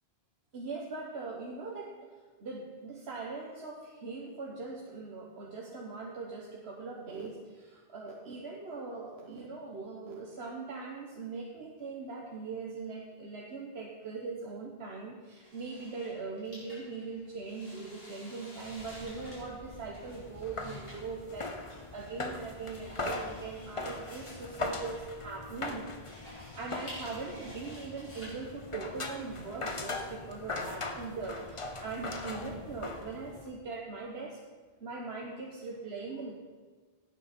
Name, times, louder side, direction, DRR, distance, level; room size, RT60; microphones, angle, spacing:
voice 1, 0.5-2.1 2.4-34.4 34.8-36.3, right 4 dB, 85° right, -2 dB, 1.4 m, -41 dB
sound 1, 15.4-30.0, equal, 65° left, 4.3 m, -52 dB
sound 2, 18.6-33.5, left 2 dB, 35° left, 0.9 m, -40 dB
16.5 x 8.9 x 4.3 m, 1.5 s
omnidirectional pair, 1.0 m